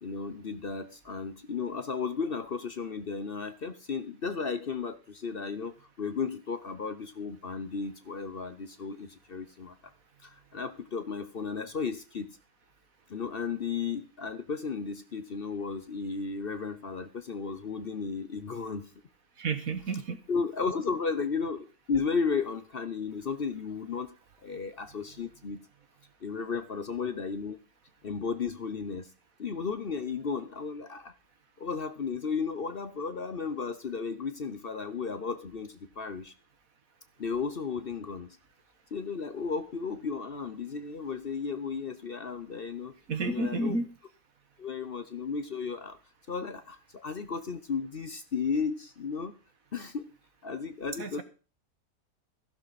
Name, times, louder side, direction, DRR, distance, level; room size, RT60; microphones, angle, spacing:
voice 1, 0.0-9.9 10.2-12.4 13.1-18.9 20.3-24.2 24.4-25.7 26.2-27.6 28.0-29.1 29.4-31.1 31.6-36.3 37.2-38.3 38.9-42.9 43.2-43.8 44.6-46.0 46.3-49.3 49.7-50.1 50.4-51.2, left 5 dB, 45° left, 11 dB, 0.9 m, -34 dB
voice 2, 19.4-20.2 43.1-43.9 51.0-51.2, right 3 dB, 65° right, 9 dB, 2.0 m, -31 dB
15.0 x 11.5 x 4.2 m, 0.36 s
omnidirectional pair, 1.5 m